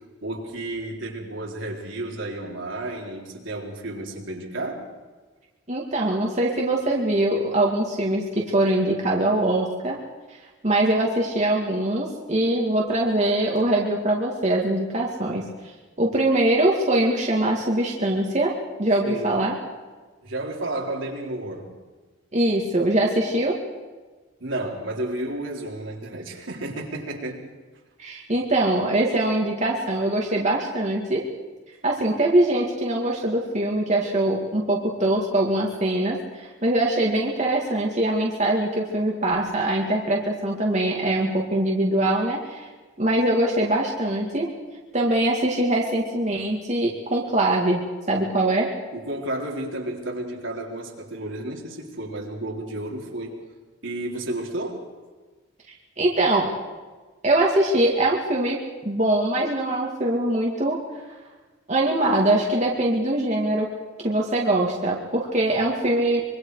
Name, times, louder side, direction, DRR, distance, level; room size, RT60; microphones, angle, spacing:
voice 1, 0.2-4.9 19.0-19.5 20.2-21.8 24.4-27.4 48.9-53.4 53.8-54.9, right 1 dB, 75° right, -1 dB, 4.0 m, -32 dB
voice 2, 5.7-10.0 10.6-15.5 16.0-18.5 18.8-19.6 22.3-23.5 28.0-31.2 31.8-42.7 43.0-44.5 44.9-47.8 48.1-48.7 56.0-56.5 57.2-58.6 58.9-60.8 61.7-63.7 64.0-66.2, right 1 dB, 35° right, -2 dB, 2.3 m, -22 dB
25.5 x 23.5 x 4.9 m, 1.3 s
head